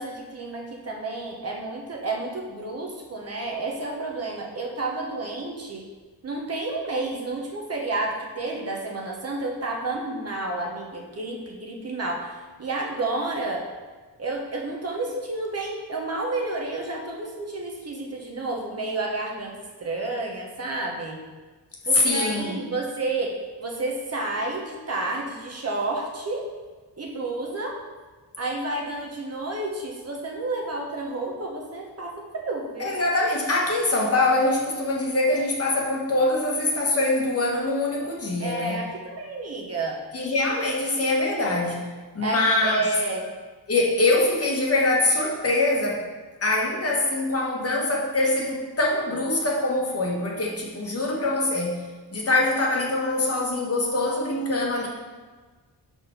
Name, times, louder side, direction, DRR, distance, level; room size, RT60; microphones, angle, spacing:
voice 1, 0.0-5.8 6.2-13.6 14.2-21.2 21.8-23.3 23.6-26.4 27.0-27.8 28.4-33.0 38.4-40.0 42.2-43.3, right 2 dB, 35° right, -1 dB, 0.9 m, -30 dB
voice 2, 21.9-22.6 32.8-38.8 40.1-41.9 42.1-42.8 43.7-46.0 46.4-54.9, left 2 dB, 35° left, -2 dB, 1.2 m, -24 dB
5.2 x 4.4 x 5.6 m, 1.3 s
wide cardioid pair, 145°, 41 cm